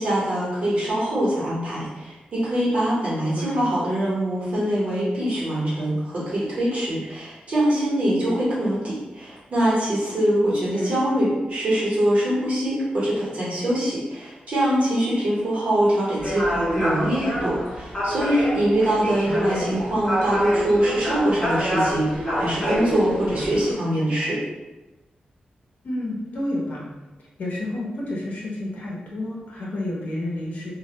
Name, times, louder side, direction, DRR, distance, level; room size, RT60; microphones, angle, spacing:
voice 1, 0.0-24.4, right 1 dB, 50° right, -8 dB, 1.0 m, -23 dB
voice 2, 3.3-3.6 10.7-10.9 19.3-19.8 25.8-26.9 27.4-30.7, left 1 dB, 60° left, -5 dB, 0.7 m, -30 dB
sound 1, 16.2-23.7, equal, 20° left, 0.9 m, -27 dB
2.2 x 2.1 x 2.8 m, 1.1 s
wide cardioid pair, 165°, 3 cm